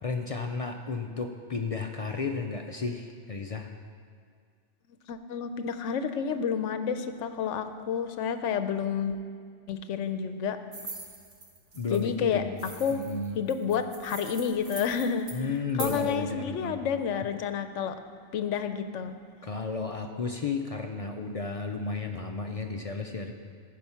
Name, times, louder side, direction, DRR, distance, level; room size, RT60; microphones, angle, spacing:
voice 1, 0.0-3.7 11.7-12.6 12.9-13.4 15.3-16.9 19.4-23.3, left 4 dB, 50° left, 4 dB, 0.4 m, -33 dB
voice 2, 5.1-9.2 9.7-10.6 11.9-12.5 12.8-13.1 13.4-15.3 15.8-18.0 18.3-19.2, left 7 dB, 80° left, 9 dB, 0.9 m, -30 dB
sound 1, 10.7-12.0 12.6-16.1, right 3 dB, 55° right, 1.6 m, -42 dB
15.0 x 5.1 x 5.7 m, 2.1 s
omnidirectional pair, 1.2 m